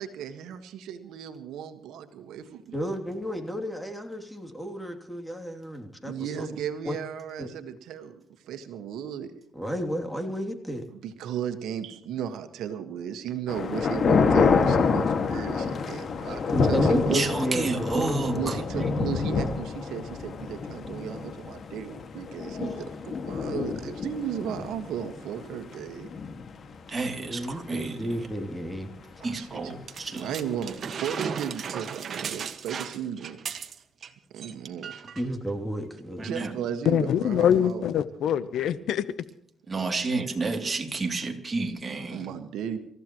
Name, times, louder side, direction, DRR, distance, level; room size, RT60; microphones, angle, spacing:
voice 1, 0.0-2.8 6.0-9.3 10.9-17.2 18.3-26.1 29.2-29.7 30.1-33.4 34.3-35.0 36.2-37.9 39.8-40.1 42.1-42.8, right 9 dB, 85° right, 8 dB, 1.6 m, -35 dB
voice 2, 2.7-6.6 6.8-7.0 7.4-7.5 9.5-10.8 16.3-18.9 27.3-28.9 29.2-29.3 35.2-36.3, equal, 5° left, 4 dB, 2.9 m, -32 dB
sound 1, 13.5-27.1 27.4-27.5 27.7-28.1 28.7-28.8 29.7-29.8, left 5 dB, 50° left, 2.0 m, -27 dB
voice 3, 17.1-19.0 26.9-28.1 29.2-30.3 36.2-36.5 39.7-42.3, right 3 dB, 30° right, 3 dB, 2.9 m, -31 dB
sound 2, 29.9-34.1 34.4-34.5 34.8-35.3 36.0-36.1, right 6 dB, 55° right, 1.6 m, -36 dB
voice 4, 36.8-39.1, left 9 dB, 75° left, 15 dB, 0.9 m, -24 dB
27.5 x 15.0 x 3.1 m, 0.71 s
cardioid pair, 90°, 0 cm